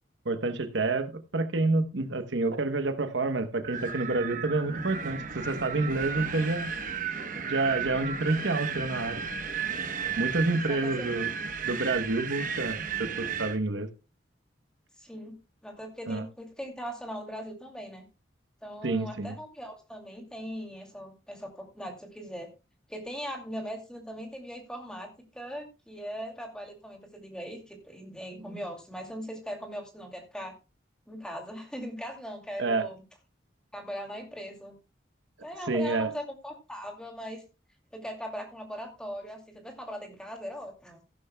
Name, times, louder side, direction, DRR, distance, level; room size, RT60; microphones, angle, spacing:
voice 1, 0.2-6.7 7.4-9.2 10.2-11.3 11.6-13.9 16.1-16.2 18.8-19.3 28.5-28.6 32.6-32.9 35.7-36.1, right 2 dB, 75° right, 1.0 m, -28 dB
Wind, 3.6-13.6, right 6 dB, 45° right, 1.0 m, -34 dB
voice 2, 10.4-11.1 15.0-15.3 15.6-18.1 18.6-22.5 22.9-30.5 31.1-33.0 33.7-34.8 35.4-37.4 37.9-41.0, equal, 5° left, 2.4 m, -40 dB
15.5 x 11.5 x 2.2 m
head